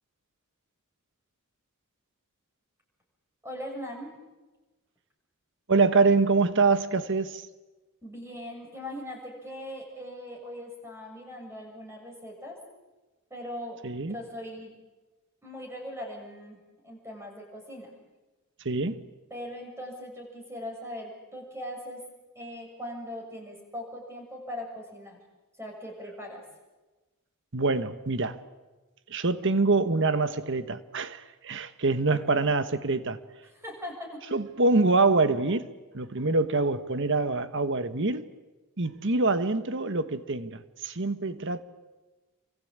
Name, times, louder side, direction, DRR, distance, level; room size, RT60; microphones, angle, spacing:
voice 1, 3.4-4.1 8.0-12.6 13.3-14.7 15.4-16.6 16.8-17.9 19.3-22.1 22.4-25.2 25.6-26.4 32.1-32.5 33.4-34.2, equal, 10° right, 6.9 m, -40 dB
voice 2, 5.7-7.5 13.8-14.2 18.6-19.0 27.5-28.4 29.1-33.2 34.3-35.7 35.9-38.3 38.8-41.6, right 3 dB, 55° right, 1.3 m, -25 dB
28.0 x 24.0 x 8.8 m
head